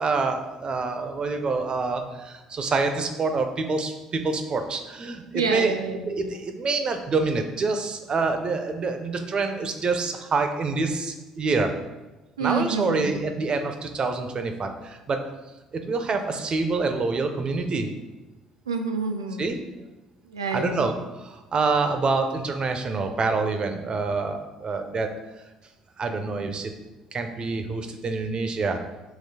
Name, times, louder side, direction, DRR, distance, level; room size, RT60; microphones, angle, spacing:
voice 1, 0.0-5.7 6.1-11.7 12.4-15.2 15.7-17.9 19.4-19.6 20.5-25.1 26.0-26.7 27.1-28.8, right 3 dB, 40° right, 6 dB, 0.5 m, -26 dB
voice 2, 5.3-6.0 12.4-13.3 18.7-19.5 20.3-20.9, right 4 dB, 90° right, 4 dB, 0.3 m, -28 dB
5.0 x 3.0 x 2.7 m, 1.1 s
hypercardioid pair, 55°, 2 cm